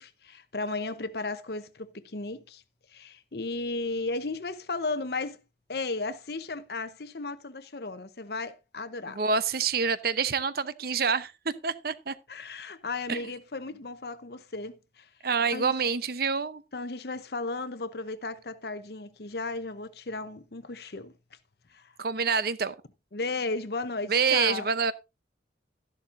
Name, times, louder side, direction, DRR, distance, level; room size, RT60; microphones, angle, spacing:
voice 1, 0.0-2.6 2.9-5.4 5.7-9.2 12.3-15.1 15.5-15.7 16.7-21.1 21.7-21.9 23.1-24.7, left 3 dB, 60° left, 0.9 m, -35 dB
voice 2, 9.1-12.1 13.1-13.2 15.2-16.6 22.0-22.7 24.1-24.9, right 5 dB, 55° right, 0.8 m, -27 dB
13.0 x 11.5 x 2.6 m
head